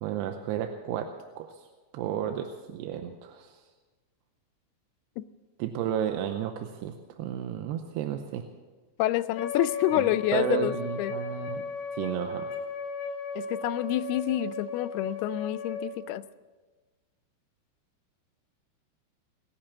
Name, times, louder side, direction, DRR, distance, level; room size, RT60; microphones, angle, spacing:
voice 1, 0.0-1.1 1.4-1.7 1.9-3.6 5.6-8.4 9.9-11.7 11.9-12.5, right 10 dB, 85° right, 6 dB, 2.8 m, -32 dB
voice 2, 9.0-10.7 11.0-11.1 13.4-16.2, left 14 dB, 80° left, 13 dB, 2.4 m, -28 dB
Wind instrument woodwind instrument, 9.4-15.9, left 3 dB, 65° left, 2.3 m, -36 dB
20.5 x 8.9 x 7.3 m, 1.3 s
omnidirectional pair, 4.7 m